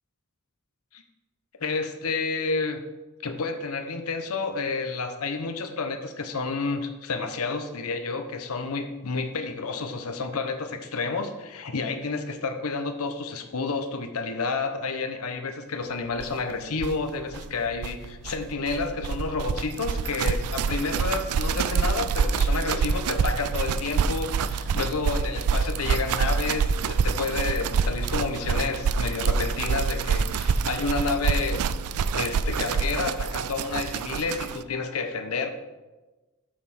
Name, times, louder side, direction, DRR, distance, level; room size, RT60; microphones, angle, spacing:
voice 1, 1.6-2.8 3.2-31.6 32.1-35.5, left 4 dB, 80° left, 7 dB, 0.8 m, -30 dB
sound 1, 16.2-16.3 16.5-16.6 16.8-34.6, right 5 dB, 90° right, 0.4 m, -26 dB
6.4 x 5.6 x 6.3 m, 1.2 s
head